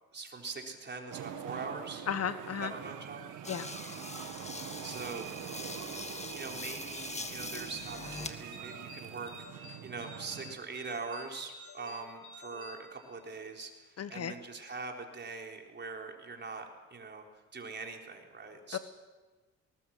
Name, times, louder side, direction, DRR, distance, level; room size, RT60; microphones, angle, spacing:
voice 1, 0.1-2.1 2.6-3.3 4.8-5.3 6.3-17.2 17.5-18.8, right 4 dB, 35° right, 2 dB, 4.0 m, -42 dB
sound 1, 1.1-10.6, right 10 dB, 90° right, 1.8 m, -44 dB
voice 2, 2.1-2.7 3.5-3.7 14.0-14.3 18.7-18.8, left 8 dB, 55° left, 11 dB, 1.4 m, -34 dB
sound 2, 3.4-8.4 8.8-9.5, left 3 dB, 20° left, 1.9 m, -43 dB
sound 3, 7.8-13.5, left 1 dB, 85° left, 5.8 m, -52 dB
20.0 x 19.5 x 7.8 m, 1.3 s
cardioid pair, 90°, 30 cm